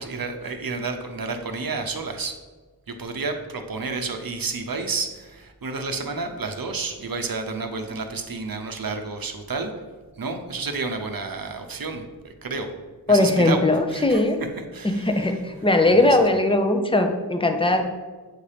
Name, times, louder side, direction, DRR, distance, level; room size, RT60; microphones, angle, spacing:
voice 1, 0.0-2.4 2.9-9.7 10.2-12.7 13.1-13.6 13.9-15.4 15.9-16.2 17.7-17.8, right 4 dB, 55° right, 5 dB, 0.7 m, -31 dB
voice 2, 13.1-14.4 14.8-17.8, left 2 dB, 15° left, 5 dB, 0.7 m, -19 dB
8.0 x 2.8 x 4.9 m, 1.3 s
wide cardioid pair, 50°, 41 cm